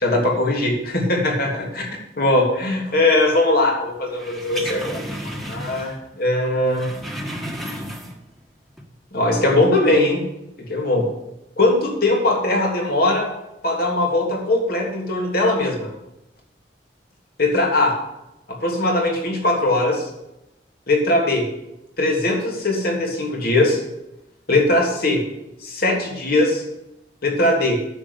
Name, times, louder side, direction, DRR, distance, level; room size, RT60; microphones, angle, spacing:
voice 1, 0.0-1.6 2.2-6.9 9.1-10.2 10.7-11.0 11.6-13.3 13.6-15.9 17.4-17.9 18.5-20.1 20.9-21.4 22.0-23.8 24.5-25.2 25.6-26.6 27.2-27.8, left 2 dB, 60° left, 0 dB, 3.2 m, -20 dB
sound 1, 4.1-6.1 6.3-8.4 8.7-8.8, equal, ahead, 1.6 m, -32 dB
9.7 x 7.9 x 8.3 m, 0.88 s
head